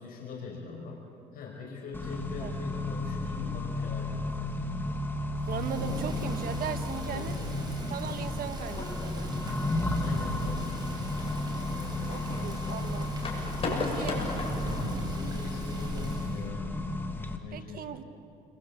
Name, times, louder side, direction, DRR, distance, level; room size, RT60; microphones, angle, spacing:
voice 1, 0.0-4.6 7.0-7.7 9.9-11.4 13.6-14.3 14.7-16.7 17.4-17.9, left 4 dB, 60° left, -1 dB, 5.4 m, -41 dB
Accelerating revving vroom, 1.9-17.4, left 2 dB, 10° left, 2.3 m, -33 dB
Thunder / Rain, 5.4-16.5, right 2 dB, 25° right, 6.4 m, -40 dB
voice 2, 5.5-7.4 7.9-9.3 12.0-13.1 13.6-14.2 17.5-18.0, right 8 dB, 60° right, 9 dB, 1.6 m, -38 dB
sound 1, 8.6-14.9, left 3 dB, 35° left, 7.2 m, -39 dB
29.5 x 23.5 x 8.5 m, 2.6 s
cardioid pair, 110°, 17 cm